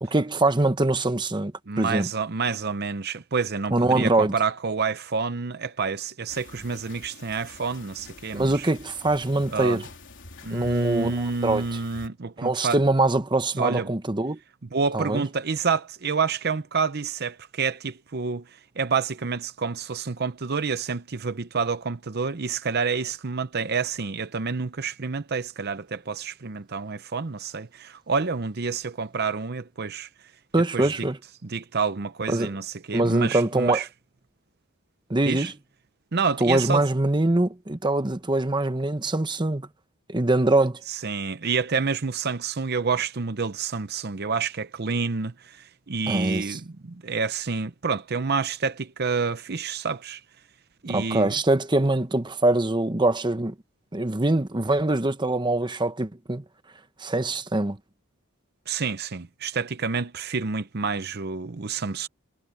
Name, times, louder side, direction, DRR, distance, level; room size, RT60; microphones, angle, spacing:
voice 1, 0.0-2.1 3.7-4.3 8.3-9.9 10.5-11.8 12.4-14.4 14.9-15.2 30.5-31.2 32.3-32.6 32.9-33.8 35.1-35.5 36.4-39.7 40.1-40.8 46.1-46.6 50.9-53.5 53.9-56.4 57.0-57.8, right 2 dB, 20° right, 1.0 m, -23 dB
voice 2, 1.7-8.7 9.5-9.8 10.4-12.8 13.6-13.9 14.7-18.4 18.8-30.1 30.7-30.9 31.5-33.8 35.2-35.5 36.1-36.9 40.9-50.2 50.8-51.3 58.7-62.1, right 5 dB, 50° right, 0.7 m, -28 dB
sound 1, 6.3-12.1, left 3 dB, 60° left, 3.7 m, -46 dB
head